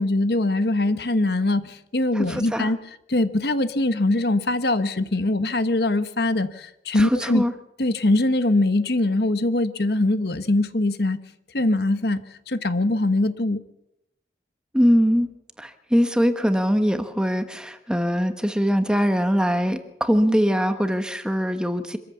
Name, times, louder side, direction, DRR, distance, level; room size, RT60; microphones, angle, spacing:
voice 1, 0.0-7.4 7.8-11.2 11.5-13.6, left 2 dB, 65° left, 12 dB, 1.2 m, -22 dB
voice 2, 2.1-2.7 6.9-7.5 14.7-15.3 15.6-22.0, equal, 5° right, 8 dB, 1.2 m, -22 dB
25.5 x 14.0 x 7.1 m, 0.84 s
head